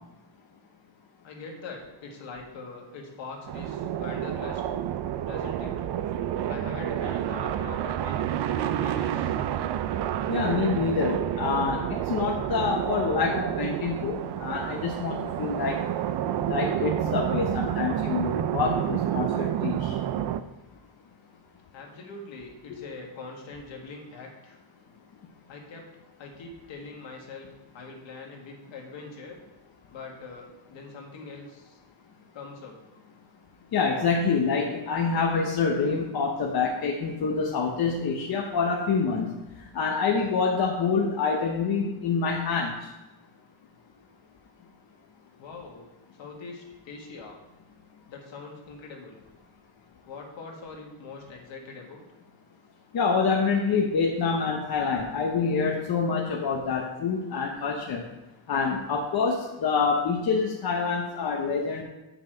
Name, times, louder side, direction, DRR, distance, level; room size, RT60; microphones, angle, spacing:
voice 1, 1.2-4.6 5.2-5.8 6.5-8.2 8.6-9.4 21.7-24.6 25.5-25.8 26.2-29.4 29.9-31.8 32.3-32.8 45.4-45.9 46.2-47.4 48.1-49.2 50.1-52.0, left 3 dB, 70° left, 0 dB, 1.9 m, -42 dB
sound 1, 3.5-20.4, right 10 dB, 60° right, 0.6 m, -29 dB
voice 2, 10.3-15.8 16.4-19.9 33.7-39.3 39.7-42.7 52.9-58.0 58.5-61.8, left 5 dB, 50° left, -1 dB, 1.0 m, -26 dB
7.3 x 5.9 x 4.5 m, 1.0 s
cardioid pair, 125°, 46 cm